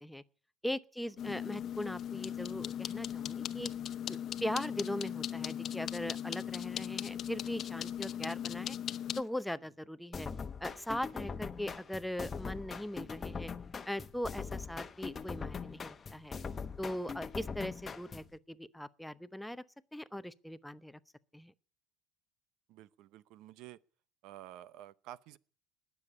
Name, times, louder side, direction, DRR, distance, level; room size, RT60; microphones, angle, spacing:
voice 1, 0.6-3.7 4.1-8.8 9.2-10.3 10.6-13.5 13.9-16.4 16.8-19.6 19.9-21.0 21.3-21.5, left 1 dB, 5° left, 0.7 m, -40 dB
sound 1, 1.2-9.2, left 10 dB, 45° left, 0.7 m, -38 dB
sound 2, 10.1-18.3, left 5 dB, 25° left, 1.1 m, -42 dB
voice 2, 22.7-23.8 24.2-25.4, right 13 dB, 65° right, 0.7 m, -51 dB
20.0 x 7.2 x 9.6 m
supercardioid pair, 105°, 0 cm